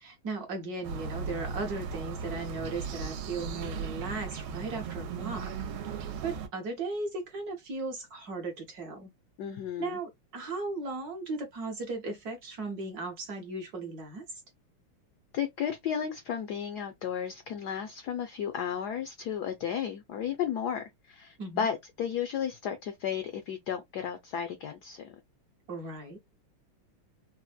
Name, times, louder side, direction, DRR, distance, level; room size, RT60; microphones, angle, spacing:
voice 1, 0.0-5.5 5.9-9.1 9.8-14.4 21.4-21.7 25.7-26.2, right 3 dB, 60° right, 1.1 m, -37 dB
sound 1, 0.8-6.5, right 5 dB, 85° right, 1.5 m, -37 dB
voice 2, 9.4-10.0 15.3-25.2, left 8 dB, 75° left, 0.9 m, -33 dB
4.1 x 2.0 x 2.2 m
omnidirectional pair, 2.3 m